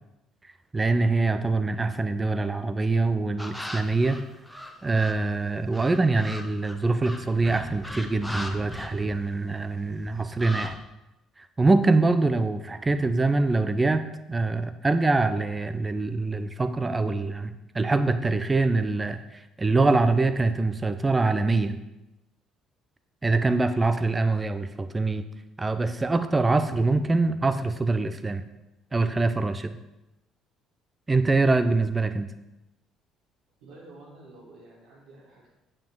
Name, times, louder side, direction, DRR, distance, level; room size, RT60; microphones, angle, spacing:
voice 1, 0.7-4.2 4.8-10.8 11.4-21.8 23.2-25.2 25.6-28.4 28.9-29.8 31.1-32.3, right 3 dB, 20° right, 11 dB, 0.8 m, -24 dB
sound 1, 3.4-5.3 5.7-9.6 9.8-10.8, left 1 dB, 5° left, 1.3 m, -39 dB
voice 2, 33.6-35.5, right 2 dB, 70° right, -8 dB, 2.4 m, -49 dB
8.9 x 7.5 x 4.7 m, 0.97 s
figure-of-eight pair, 50°, 0 cm